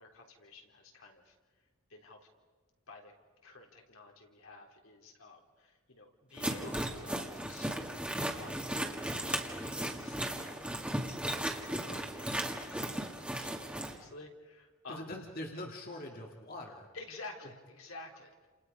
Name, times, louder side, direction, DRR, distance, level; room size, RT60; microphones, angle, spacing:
voice 1, 0.0-1.4 1.9-2.3 2.9-3.1 3.4-7.9 8.2-8.9 9.3-15.1 16.9-18.5, left 3 dB, 75° left, 1 dB, 3.7 m, -51 dB
sound 1, 6.4-13.9, right 1 dB, 5° right, 2.1 m, -36 dB
voice 2, 14.9-16.9, left 1 dB, 45° left, 0 dB, 2.4 m, -43 dB
30.0 x 28.0 x 5.4 m, 1.5 s
head